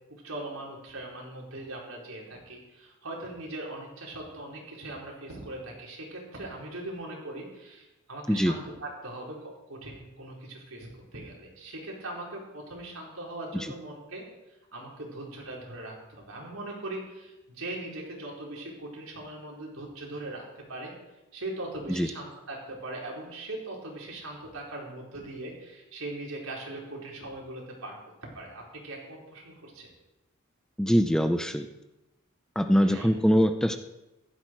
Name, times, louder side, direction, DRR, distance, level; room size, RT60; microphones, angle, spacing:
voice 1, 0.1-14.2 14.7-20.9 21.3-29.9 32.8-33.1, right 2 dB, 80° right, -2 dB, 4.7 m, -40 dB
voice 2, 30.8-31.7 32.6-33.8, equal, 5° left, 7 dB, 0.6 m, -23 dB
15.5 x 13.0 x 4.7 m, 0.99 s
head